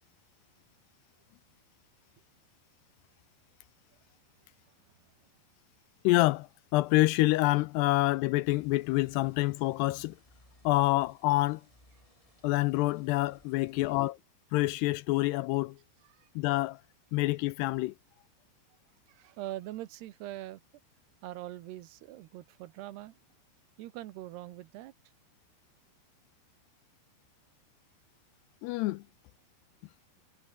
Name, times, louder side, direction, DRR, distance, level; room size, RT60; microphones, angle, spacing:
voice 1, 6.0-10.2 10.6-11.6 12.4-14.2 14.5-15.8 16.4-16.8 17.1-17.9 28.6-29.0, left 20 dB, 80° left, 2.5 m, -27 dB
sound 1, 8.4-14.1, left 1 dB, 5° left, 5.2 m, -63 dB
voice 2, 13.7-14.1 16.1-16.3 19.1-20.6 21.2-23.2 23.8-24.9, right 15 dB, 75° right, 2.9 m, -43 dB
omnidirectional pair, 5.1 m